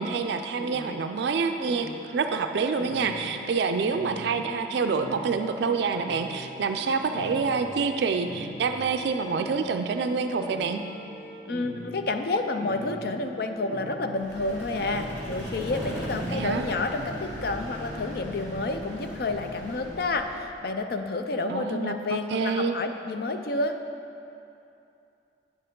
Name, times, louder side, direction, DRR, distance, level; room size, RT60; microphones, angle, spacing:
voice 1, 0.0-10.8 16.1-16.6 21.5-22.8, right 5 dB, 65° right, 7 dB, 0.3 m, -27 dB
sound 1, 0.6-18.0, left 1 dB, 80° left, 1.6 m, -42 dB
voice 2, 11.5-23.8, left 2 dB, 55° left, 6 dB, 0.5 m, -30 dB
Vehicle, 14.1-20.5, equal, 10° left, 1.8 m, -38 dB
9.1 x 6.8 x 3.7 m, 2.7 s
head